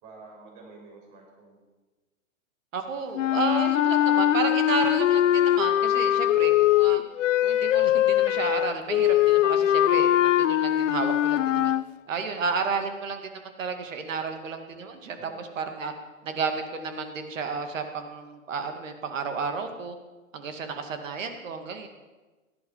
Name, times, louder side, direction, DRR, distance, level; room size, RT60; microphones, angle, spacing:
voice 1, 0.0-1.6 15.2-15.4, right 3 dB, 40° right, 0 dB, 5.4 m, -48 dB
voice 2, 2.7-7.0 7.4-11.7 12.1-15.9 16.2-20.0 20.3-21.9, right 5 dB, 65° right, 7 dB, 2.4 m, -32 dB
sound 1, 3.1-11.8, left 12 dB, 65° left, 0.6 m, -22 dB
17.0 x 12.0 x 5.7 m, 1.2 s
hypercardioid pair, 115°, 41 cm